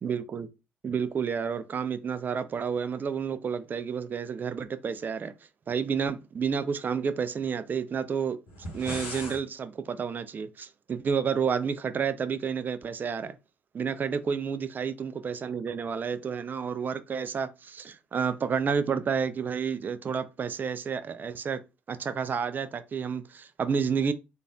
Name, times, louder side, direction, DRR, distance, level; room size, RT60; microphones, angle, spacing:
voice 1, 0.0-0.5 0.8-5.3 5.7-8.4 8.7-13.4 13.7-21.6 21.9-24.1, right 6 dB, 30° right, 0.3 m, -30 dB
sound 1, 8.5-9.4, left 1 dB, 65° left, 1.1 m, -37 dB
3.4 x 2.3 x 2.3 m
figure-of-eight pair, 50°, 6 cm